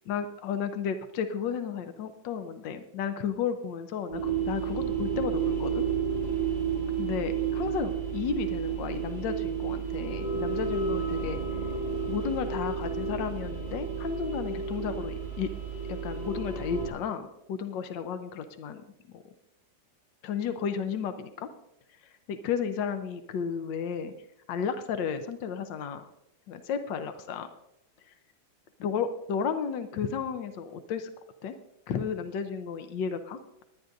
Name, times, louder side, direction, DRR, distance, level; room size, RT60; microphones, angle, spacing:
voice 1, 0.1-5.9 7.0-11.4 12.1-15.5 15.9-18.8 19.1-19.2 20.2-21.5 22.3-24.1 24.5-26.1 26.5-27.5 28.8-31.1 31.4-31.6 31.9-33.6, left 7 dB, 70° left, 9 dB, 1.4 m, -33 dB
sound 1, 4.1-16.9, right 6 dB, 20° left, 5.5 m, -31 dB
19.5 x 11.0 x 2.6 m, 0.81 s
omnidirectional pair, 2.2 m